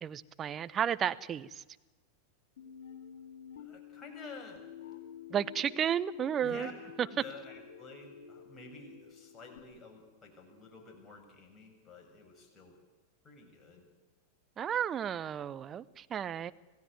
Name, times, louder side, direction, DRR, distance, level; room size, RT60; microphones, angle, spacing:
voice 1, 0.0-1.6 5.3-6.7 14.6-16.5, right 9 dB, 25° right, 14 dB, 0.9 m, -33 dB
sound 1, 2.6-9.6, left 7 dB, 55° left, 4.6 m, -50 dB
voice 2, 3.6-4.6 6.4-6.7 7.0-12.7 13.2-13.8, left 4 dB, 20° left, 1 dB, 7.0 m, -50 dB
26.5 x 17.0 x 9.2 m, 1.2 s
figure-of-eight pair, 90°, 0 cm